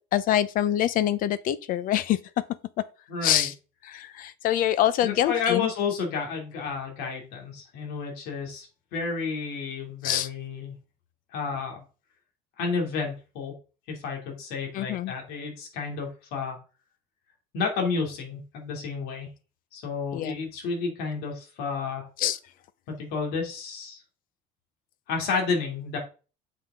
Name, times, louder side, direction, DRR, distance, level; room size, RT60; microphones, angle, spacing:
voice 1, 0.1-2.2 3.2-3.5 3.8-5.7 10.0-10.3 14.7-15.1 20.1-20.4 22.2-22.4, left 12 dB, 55° left, 0.7 m, -25 dB
voice 2, 3.1-3.5 5.0-8.7 8.9-10.8 11.3-11.8 12.6-13.5 13.9-16.6 17.5-19.3 19.7-22.1 22.9-24.0 25.1-26.0, left 5 dB, 75° left, 2.9 m, -31 dB
8.6 x 5.6 x 3.8 m
cardioid pair, 130°, 17 cm